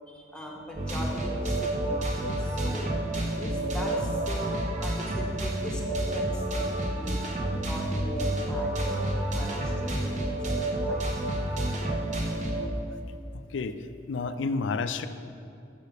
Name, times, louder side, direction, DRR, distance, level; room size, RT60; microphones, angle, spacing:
voice 1, 0.1-3.0 3.3-7.3 7.6-10.6 10.9-11.3, equal, 5° left, -1 dB, 1.0 m, -41 dB
sound 1, 0.8-12.7, right 1 dB, 40° right, 1.0 m, -29 dB
voice 2, 13.3-15.1, left 4 dB, 75° left, 11 dB, 0.4 m, -31 dB
8.3 x 5.2 x 5.2 m, 2.5 s
head